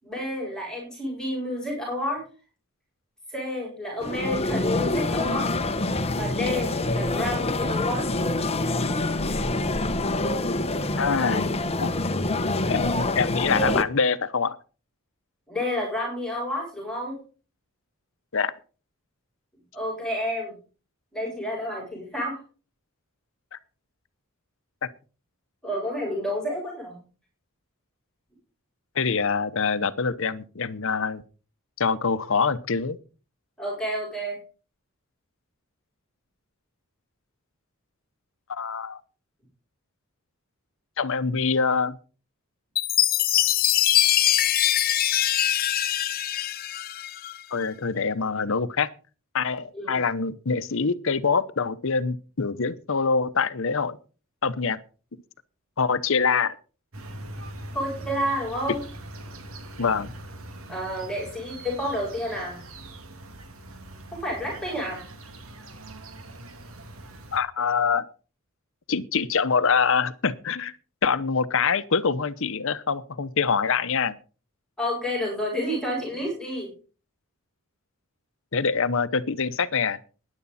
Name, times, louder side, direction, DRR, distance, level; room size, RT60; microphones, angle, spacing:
voice 1, 0.0-2.2 3.3-5.5 6.1-8.2 15.5-17.2 19.7-20.5 21.1-22.4 25.6-27.0 33.6-34.4 49.7-50.0 57.7-58.8 60.7-62.6 64.1-65.0 74.8-76.7, left 1 dB, 5° left, 7.8 m, -30 dB
sound 1, 4.0-13.8, left 2 dB, 30° left, 1.0 m, -26 dB
voice 2, 11.0-11.5 11.8-11.9 12.7-14.6 18.3-18.5 23.5-23.6 24.8-24.9 28.9-31.2 31.8-33.0 38.5-39.0 41.0-42.0 47.5-48.9 49.3-54.0 54.4-54.8 55.8-56.5 59.8-60.1 67.3-68.0 68.9-70.7 71.0-74.1 78.5-80.0, left 5 dB, 65° left, 0.9 m, -25 dB
Chime, 42.8-47.4, left 12 dB, 45° left, 0.5 m, -22 dB
sound 2, 56.9-67.4, right 1 dB, 70° right, 2.5 m, -42 dB
15.5 x 11.0 x 4.2 m
head